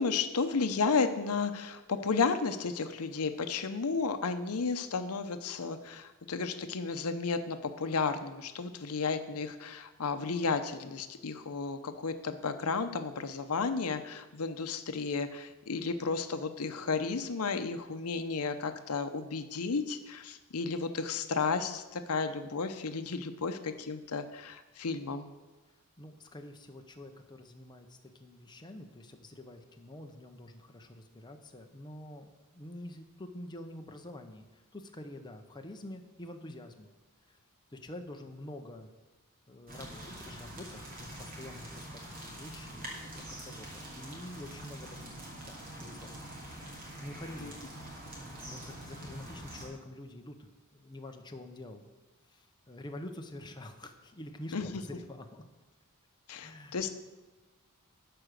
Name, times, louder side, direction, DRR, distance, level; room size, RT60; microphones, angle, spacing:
voice 1, 0.0-25.3 47.4-47.5 54.5-54.7 56.3-56.9, left 4 dB, 75° left, 9 dB, 0.7 m, -33 dB
voice 2, 26.0-36.9 37.3-37.4 37.7-38.9 39.5-45.1 45.4-46.7 47.0-47.6 48.4-51.8 52.3-55.4 56.4-56.9, left 1 dB, 20° left, 4 dB, 0.8 m, -47 dB
sound 1, 39.7-49.7, right 1 dB, 40° right, 2.7 m, -45 dB
12.5 x 4.9 x 6.6 m, 1.1 s
head